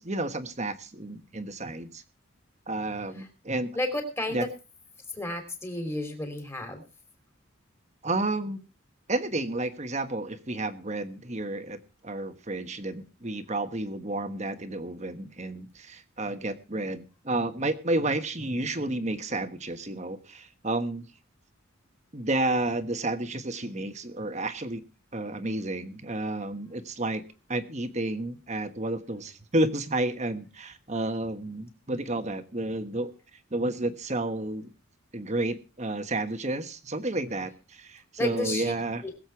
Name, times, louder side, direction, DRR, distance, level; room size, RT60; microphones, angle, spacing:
voice 1, 0.0-2.0 2.7-3.7 4.3-4.5 8.0-8.6 9.1-21.1 22.1-24.8 25.1-27.2 27.5-33.1 33.5-34.7 35.1-39.0, right 2 dB, 35° right, 9 dB, 1.3 m, -31 dB
voice 2, 3.7-4.5 5.1-6.8 38.2-38.7 39.0-39.1, left 1 dB, 10° left, 5 dB, 3.1 m, -31 dB
21.0 x 7.9 x 4.6 m, 0.32 s
head